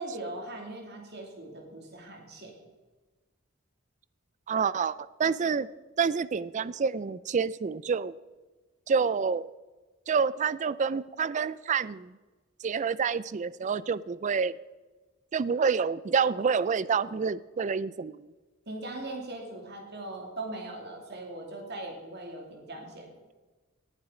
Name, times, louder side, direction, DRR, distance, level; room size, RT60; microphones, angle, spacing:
voice 1, 0.0-2.5 18.7-23.1, right 2 dB, 55° right, 1 dB, 2.8 m, -40 dB
voice 2, 4.5-4.9 5.2-5.7 6.0-8.1 8.9-9.5 10.1-12.1 12.6-14.5 15.3-18.3, right 5 dB, 35° right, 18 dB, 0.4 m, -28 dB
18.5 x 7.3 x 5.0 m, 1.2 s
head